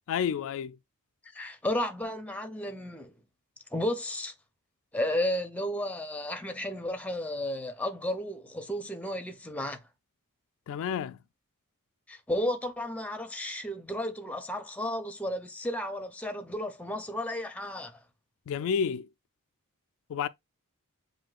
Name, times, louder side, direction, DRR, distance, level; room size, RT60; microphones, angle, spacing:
voice 1, 0.1-0.8 10.7-11.2 18.5-19.1 20.1-20.3, left 7 dB, 65° left, 0.3 m, -30 dB
voice 2, 1.3-3.1 3.7-4.3 4.9-9.8 12.1-17.9, left 1 dB, 5° left, 0.6 m, -33 dB
7.6 x 2.7 x 2.4 m
head